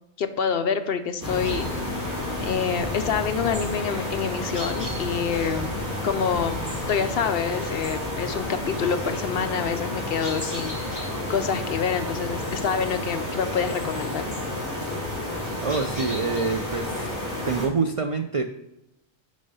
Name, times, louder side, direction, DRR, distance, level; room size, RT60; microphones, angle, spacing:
voice 1, 0.2-1.7 2.4-5.7 6.0-6.6 6.9-14.3, left 6 dB, 65° left, 9 dB, 0.8 m, -27 dB
sound 1, 1.2-17.7, left 1 dB, 15° right, 2.7 m, -30 dB
voice 2, 15.6-17.1 17.5-18.4, right 4 dB, 60° right, 6 dB, 0.3 m, -26 dB
6.3 x 5.5 x 5.4 m, 0.87 s
omnidirectional pair, 1.2 m